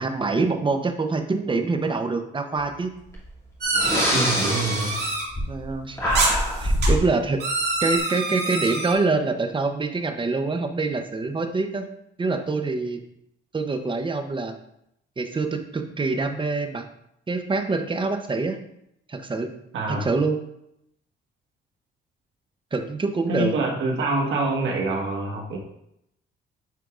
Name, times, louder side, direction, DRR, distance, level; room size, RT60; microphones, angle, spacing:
voice 1, 0.0-2.9 5.5-7.4 7.8-11.9 12.2-13.0 13.5-14.5 15.2-16.8 17.3-18.6 19.1-19.5 19.9-20.4 22.7-23.5, right 3 dB, 25° right, 6 dB, 0.8 m, -25 dB
Breathing, 3.1-3.2 3.7-5.7 6.0-7.1, equal, 15° left, 2.5 m, -24 dB
sound 1, 3.6-5.2 6.1-6.9 7.4-8.9, right 2 dB, 55° right, 2.3 m, -26 dB
voice 2, 4.1-5.0 19.7-20.1 23.3-25.6, right 2 dB, 75° right, 0 dB, 1.5 m, -25 dB
9.2 x 4.5 x 2.5 m, 0.78 s
cardioid pair, 90°, 20 cm